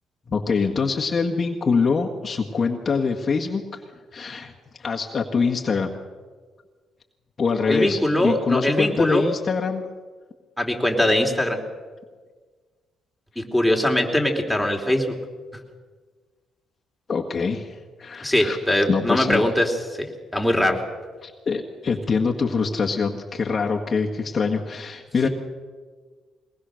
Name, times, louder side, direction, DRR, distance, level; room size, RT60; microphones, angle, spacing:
voice 1, 0.3-3.8 4.1-4.5 4.8-5.9 7.4-9.8 17.1-18.6 18.9-19.5 21.2-25.3, left 5 dB, 40° left, 1 dB, 1.7 m, -24 dB
voice 2, 7.7-9.3 10.6-11.6 13.3-15.1 18.2-20.8 25.2-25.3, left 1 dB, ahead, 1 dB, 3.3 m, -21 dB
22.0 x 19.5 x 6.5 m, 1.5 s
cardioid pair, 90°, 0 cm